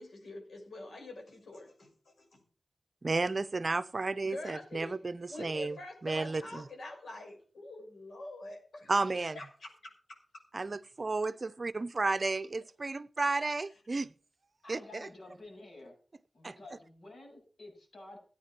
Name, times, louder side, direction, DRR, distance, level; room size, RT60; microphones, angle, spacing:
voice 1, 0.0-2.4 4.2-5.0 5.3-8.9 9.3-9.7, left 2 dB, 85° left, 1 dB, 5.8 m, -45 dB
voice 2, 3.0-5.8 6.0-6.7 8.9-9.4 10.5-14.1 14.7-15.1 16.4-16.5, right 3 dB, 45° right, 14 dB, 0.7 m, -32 dB
voice 3, 14.6-15.9 16.3-18.2, left 2 dB, 70° left, 1 dB, 7.6 m, -50 dB
14.5 x 9.2 x 6.1 m, 0.40 s
wide cardioid pair, 75°, 0 cm